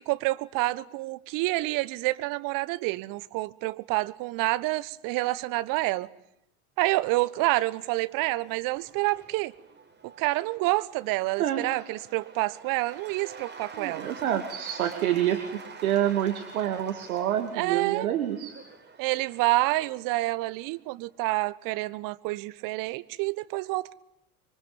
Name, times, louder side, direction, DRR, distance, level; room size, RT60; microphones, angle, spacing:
voice 1, 0.0-6.1 6.8-9.5 10.0-14.1 17.5-18.1 19.0-23.9, right 20 dB, 50° right, 1.2 m, -28 dB
Cheering / Applause / Crowd, 7.6-20.8, right 5 dB, 25° right, 5.1 m, -48 dB
voice 2, 13.7-18.5, right 11 dB, 70° right, 2.5 m, -27 dB
26.0 x 24.0 x 9.1 m
figure-of-eight pair, 75°, 44 cm